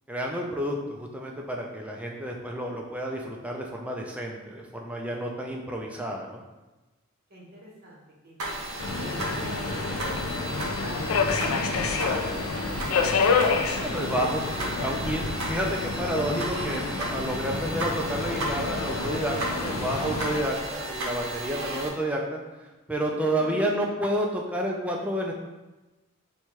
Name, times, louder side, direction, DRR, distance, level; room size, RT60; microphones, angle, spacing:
voice 1, 0.1-6.4 13.8-14.4 14.8-25.3, right 1 dB, 5° right, -1 dB, 0.3 m, -30 dB
voice 2, 7.3-13.1 23.1-23.7, equal, 45° right, -5 dB, 0.9 m, -45 dB
sound 1, 8.4-21.9, right 1 dB, 75° right, 0.7 m, -35 dB
Subway metro underground, 8.8-20.4, left 4 dB, 70° left, 0.4 m, -28 dB
4.4 x 2.3 x 2.9 m, 1.1 s
head